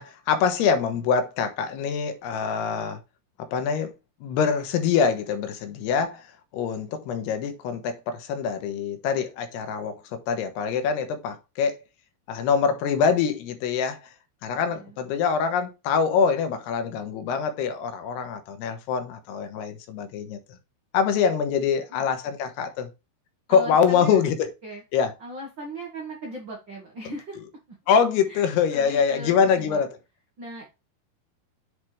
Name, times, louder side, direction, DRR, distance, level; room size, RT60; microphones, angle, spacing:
voice 1, 0.0-3.0 3.5-3.9 4.2-6.3 6.5-11.8 12.3-14.1 14.4-20.4 20.9-22.9 23.5-24.5 24.9-25.1 27.9-29.9, left 6 dB, 90° left, 3.0 m, -24 dB
voice 2, 14.6-15.0 21.9-22.3 23.5-24.2 24.6-24.8 25.2-27.4 27.7-27.8 28.3-28.4 28.7-29.8 30.4-30.7, right 1 dB, 65° right, 1.1 m, -38 dB
8.0 x 4.4 x 3.3 m
omnidirectional pair, 4.7 m